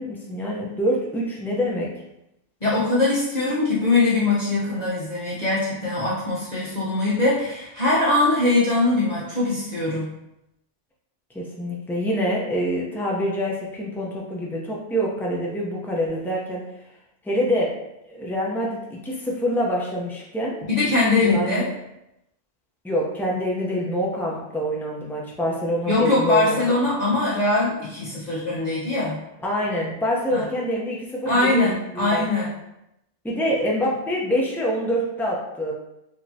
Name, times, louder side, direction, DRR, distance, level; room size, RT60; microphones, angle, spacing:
voice 1, 0.0-1.9 11.3-16.6 17.2-17.7 18.0-20.6 21.2-21.6 22.8-26.8 29.4-32.3 33.2-35.7, equal, ahead, -3 dB, 0.5 m, -26 dB
voice 2, 2.6-10.1 20.6-21.7 25.9-29.2 30.3-30.4 31.2-32.5, left 2 dB, 35° left, -8 dB, 1.1 m, -22 dB
5.0 x 2.8 x 2.8 m, 0.86 s
omnidirectional pair, 1.2 m